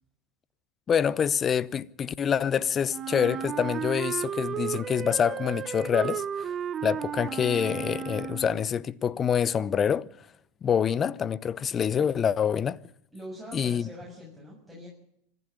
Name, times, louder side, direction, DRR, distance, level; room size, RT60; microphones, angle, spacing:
voice 1, 0.9-6.5 6.8-10.1 10.6-12.8 13.5-13.9, left 8 dB, 30° left, 0.8 m, -26 dB
Wind instrument woodwind instrument, 2.9-8.7, right 8 dB, 35° right, 0.9 m, -34 dB
voice 2, 13.1-14.9, equal, ahead, 6.9 m, -43 dB
26.0 x 11.0 x 9.0 m
hypercardioid pair, 85°, 0 cm